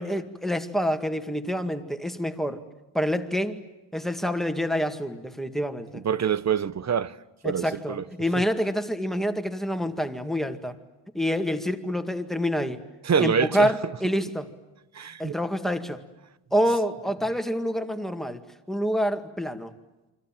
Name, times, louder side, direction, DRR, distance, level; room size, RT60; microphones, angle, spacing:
voice 1, 0.0-2.6 2.9-3.6 3.9-6.0 7.4-10.8 11.1-12.8 13.2-14.5 15.2-16.0 16.5-18.4 18.7-19.7, equal, ahead, 2.0 m, -27 dB
voice 2, 5.9-7.1 7.4-8.0 13.0-13.7 14.9-15.4, right 7 dB, 35° right, 0.8 m, -25 dB
29.0 x 25.5 x 7.5 m
cardioid pair, 130°, 49 cm